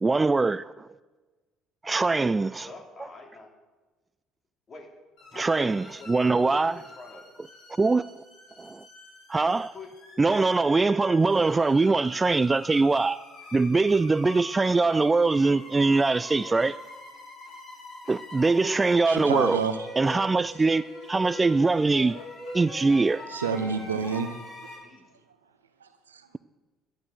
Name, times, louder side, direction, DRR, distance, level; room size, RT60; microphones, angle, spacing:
voice 1, 0.0-0.9 1.8-2.7 5.4-6.7 7.8-8.2 8.6-8.9 9.3-9.7 10.2-13.2 13.5-16.7 18.1-19.6 20.0-22.2 22.5-23.2, right 3 dB, 20° right, 0.3 m, -23 dB
voice 2, 2.6-3.5 4.7-4.9 5.3-7.3 9.7-9.9 16.4-16.7 23.0-23.6 24.8-25.2, left 3 dB, 40° left, 3.4 m, -46 dB
sound 1, 5.2-24.7, left 1 dB, 65° left, 6.5 m, -44 dB
voice 3, 19.1-19.9 23.3-24.4 25.8-26.3, right 6 dB, 90° right, 0.9 m, -29 dB
13.0 x 11.5 x 6.6 m
hypercardioid pair, 55°, 0 cm